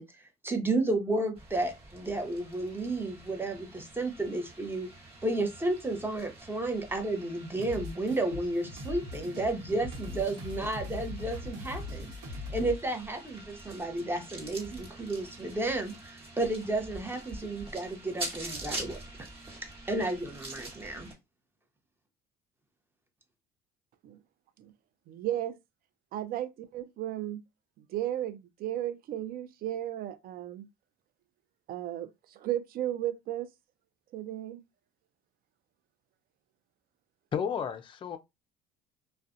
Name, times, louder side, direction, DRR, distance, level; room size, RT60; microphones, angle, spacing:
voice 1, 0.0-4.9 5.2-19.3 19.6-21.1, right 2 dB, 10° right, 0.8 m, -32 dB
sound 1, 1.3-21.1, right 2 dB, 30° right, 1.3 m, -46 dB
sound 2, 7.6-12.8, left 2 dB, 80° right, 1.0 m, -40 dB
voice 2, 25.1-25.6 26.1-27.4 27.9-30.7 31.7-32.1 32.4-33.5 34.1-34.6, right 12 dB, 55° right, 0.4 m, -34 dB
voice 3, 37.3-38.2, left 7 dB, 30° left, 0.4 m, -32 dB
2.4 x 2.1 x 2.5 m
supercardioid pair, 75°, 18 cm